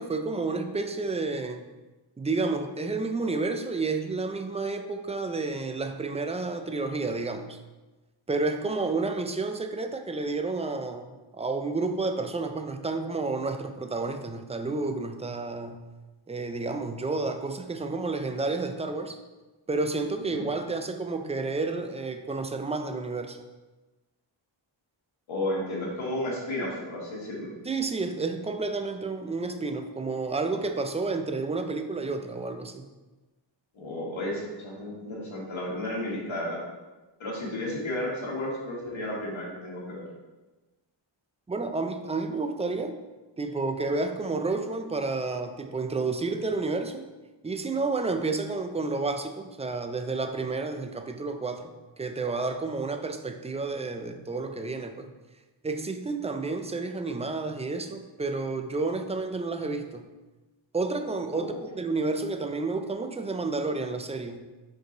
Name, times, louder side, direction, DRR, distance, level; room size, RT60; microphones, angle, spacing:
voice 1, 0.0-1.7 2.2-7.6 8.3-15.8 16.3-19.2 19.7-23.4 27.6-32.9 41.5-43.0 43.4-47.1 47.4-51.7 52.0-55.1 55.6-60.1 60.7-64.4, right 3 dB, 15° right, 6 dB, 0.3 m, -30 dB
voice 2, 25.3-27.5 33.7-36.6 37.2-40.0 61.3-61.6, left 1 dB, 80° left, -4 dB, 1.9 m, -33 dB
5.2 x 4.7 x 3.8 m, 1.2 s
wide cardioid pair, 115°, 47 cm